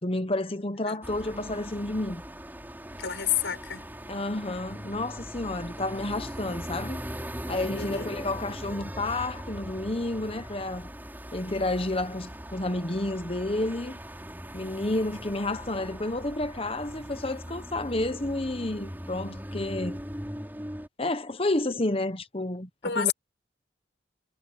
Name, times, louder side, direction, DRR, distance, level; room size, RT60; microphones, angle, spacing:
voice 1, 0.0-2.2 4.1-7.0 7.5-10.9 11.3-14.0 14.5-20.0 21.0-22.7 23.0-23.1, left 2 dB, 30° left, 1.1 m, -30 dB
sound 1, 1.0-20.9, equal, 10° right, 6.2 m, -40 dB
voice 2, 3.0-3.9 7.7-8.1 22.8-23.1, left 9 dB, 65° left, 7.0 m, -29 dB
head